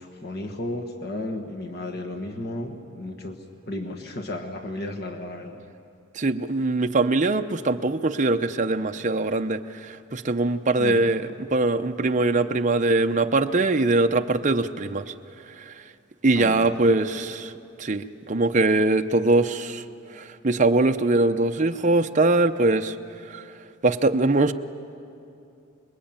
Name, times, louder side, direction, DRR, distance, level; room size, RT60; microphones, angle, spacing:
voice 1, 0.0-3.4 3.7-5.6 10.8-11.1 16.3-16.8, left 1 dB, 50° left, 2 dB, 1.5 m, -33 dB
voice 2, 6.1-15.1 15.6-15.7 16.2-17.5 17.8-19.8 20.1-22.9 23.3-23.4 23.8-24.5, right 2 dB, 35° right, 6 dB, 0.7 m, -22 dB
26.5 x 21.5 x 8.9 m, 2.6 s
head